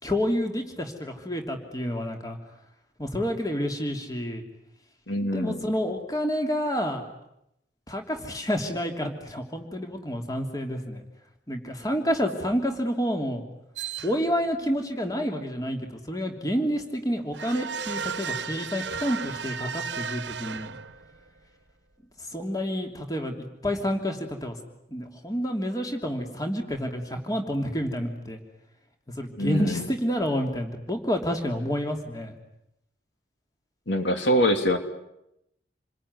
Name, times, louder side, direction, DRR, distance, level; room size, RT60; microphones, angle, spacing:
voice 1, 0.0-2.4 3.0-4.4 5.3-7.0 7.9-11.0 11.5-13.4 14.0-20.8 22.3-23.3 23.6-24.6 24.9-28.4 29.1-32.3, equal, 20° left, 3 dB, 3.1 m, -29 dB
voice 2, 5.1-5.6 29.4-29.8 33.9-34.8, equal, 70° left, 6 dB, 3.0 m, -24 dB
sound 1, 13.8-14.5 17.3-21.2, right 6 dB, 70° right, 1.2 m, -34 dB
28.5 x 22.0 x 9.7 m, 0.83 s
head